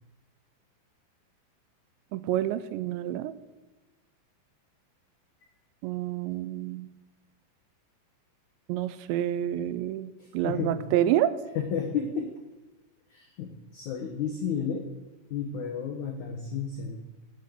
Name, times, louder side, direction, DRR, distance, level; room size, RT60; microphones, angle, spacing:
voice 1, 2.1-3.4 5.8-6.9 8.7-11.3, right 12 dB, 85° right, 15 dB, 2.8 m, -28 dB
voice 2, 10.2-10.7 11.5-12.3 13.1-14.9 15.3-17.0, left 7 dB, 85° left, 3 dB, 1.6 m, -32 dB
9.6 x 8.4 x 9.2 m, 1.1 s
omnidirectional pair, 5.2 m